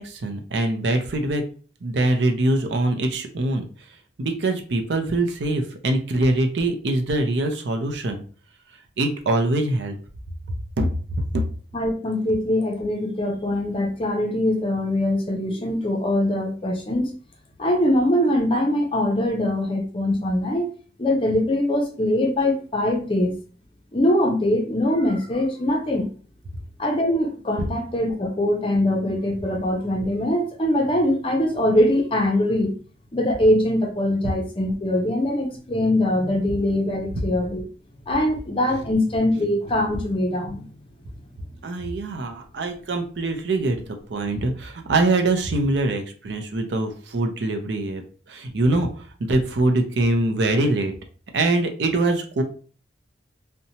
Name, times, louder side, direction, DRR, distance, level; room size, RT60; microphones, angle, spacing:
voice 1, 0.0-1.4 1.8-3.6 4.2-8.2 9.0-10.0 10.8-10.9 11.2-11.4 41.6-48.0 48.3-48.9 49.3-50.9 51.3-52.4, right 2 dB, 75° right, 5 dB, 0.5 m, -23 dB
voice 2, 11.7-17.1 17.6-20.7 21.0-23.3 23.9-26.1 26.8-32.8 33.1-37.6 38.1-40.6, left 1 dB, 30° left, 1 dB, 0.5 m, -22 dB
2.7 x 2.2 x 2.7 m, 0.40 s
head